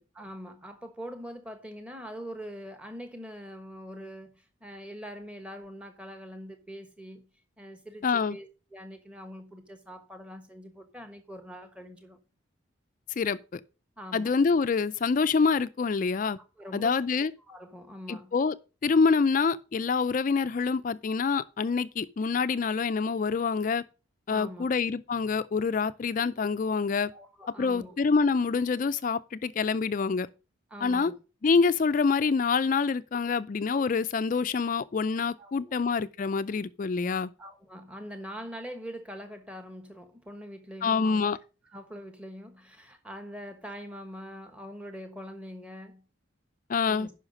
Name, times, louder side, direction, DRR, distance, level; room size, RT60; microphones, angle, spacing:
voice 1, 0.1-7.3 7.6-12.2 14.0-14.3 16.6-17.0 17.4-18.3 24.3-24.7 27.1-28.0 30.7-31.2 35.4-35.8 37.4-41.2 41.6-46.0 46.9-47.1, equal, 5° right, 1.2 m, -43 dB
voice 2, 8.0-8.4 13.2-13.6 14.1-16.4 16.7-17.3 18.1-18.5 18.8-23.8 24.3-27.1 27.6-30.3 30.8-31.1 31.4-37.3 40.8-41.4 46.7-47.1, left 5 dB, 40° left, 0.3 m, -26 dB
9.7 x 5.7 x 5.3 m
head